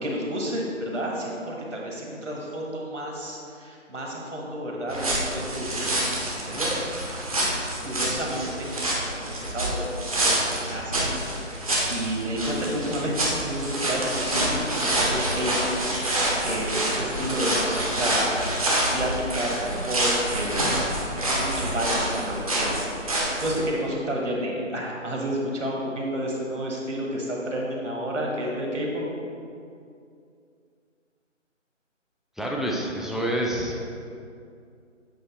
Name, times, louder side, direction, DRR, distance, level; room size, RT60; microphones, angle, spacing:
voice 1, 0.0-6.9 7.8-8.7 9.1-15.7 16.0-20.8 21.1-29.0, equal, 70° right, -2 dB, 1.4 m, -31 dB
sound 1, 4.9-23.6, right 1 dB, 30° right, 0.8 m, -27 dB
voice 2, 32.4-33.8, right 1 dB, ahead, -2 dB, 0.3 m, -27 dB
7.9 x 3.1 x 4.3 m, 2.4 s
figure-of-eight pair, 155°, 38 cm